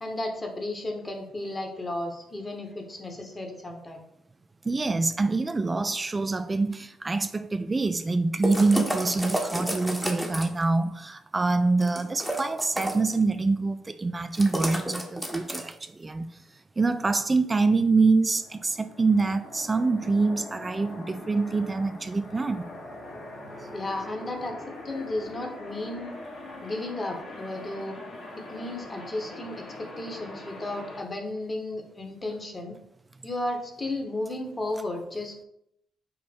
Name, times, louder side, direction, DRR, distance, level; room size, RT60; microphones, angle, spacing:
voice 1, 0.0-4.0 23.7-24.5 24.8-26.1 26.6-27.9 28.4-32.7 33.2-35.4, left 2 dB, 30° left, 1.1 m, -34 dB
voice 2, 4.6-16.3 16.8-22.6, right 3 dB, 30° right, 0.3 m, -25 dB
sound 1, 8.4-10.6 11.8-13.1 14.3-15.8, equal, ahead, 0.9 m, -31 dB
sound 2, 18.3-31.0, left 2 dB, 60° left, 1.3 m, -42 dB
5.0 x 2.1 x 4.4 m
hypercardioid pair, 50°, 0 cm